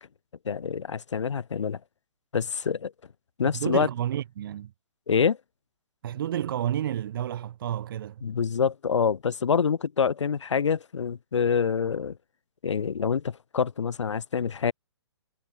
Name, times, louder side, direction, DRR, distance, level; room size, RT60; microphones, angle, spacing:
voice 1, 0.4-1.8 2.3-2.9 3.4-3.9 5.1-5.4 8.2-12.2 12.6-14.7, left 6 dB, 80° left, 1.8 m, -26 dB
voice 2, 3.5-4.7 6.0-8.3, right 11 dB, 50° right, 1.5 m, -30 dB
hypercardioid pair, 150°, 15 cm